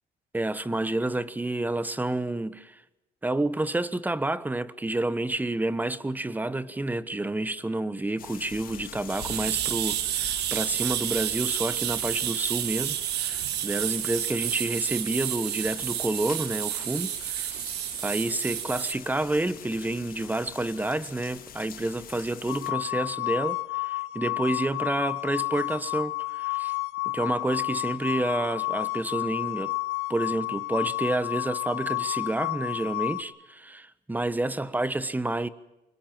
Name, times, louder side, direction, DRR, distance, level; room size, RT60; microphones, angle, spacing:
voice 1, 0.3-2.8 3.2-17.6 18.0-26.7 27.0-29.7 30.1-35.5, right 2 dB, 10° right, 1.2 m, -29 dB
sound 1, 8.2-22.7, left 10 dB, 60° left, 2.3 m, -44 dB
sound 2, 9.1-18.9, right 13 dB, 80° right, 1.4 m, -30 dB
sound 3, 22.5-33.2, left 24 dB, 90° left, 1.7 m, -31 dB
25.0 x 21.5 x 9.1 m
cardioid pair, 110°, 17 cm